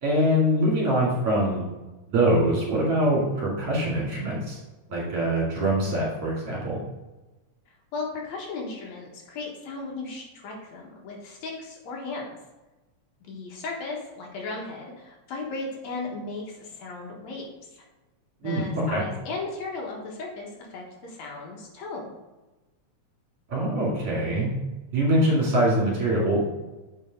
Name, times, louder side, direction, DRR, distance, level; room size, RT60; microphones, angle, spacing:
voice 1, 0.0-1.6 2.1-4.6 4.9-6.8 18.4-19.0 23.5-24.5 24.9-26.5, right 1 dB, 55° right, -5 dB, 3.4 m, -23 dB
voice 2, 7.9-12.3 13.3-17.5 18.4-22.1, left 3 dB, 75° left, -1 dB, 2.6 m, -36 dB
7.5 x 5.2 x 3.6 m, 1.1 s
omnidirectional pair, 3.3 m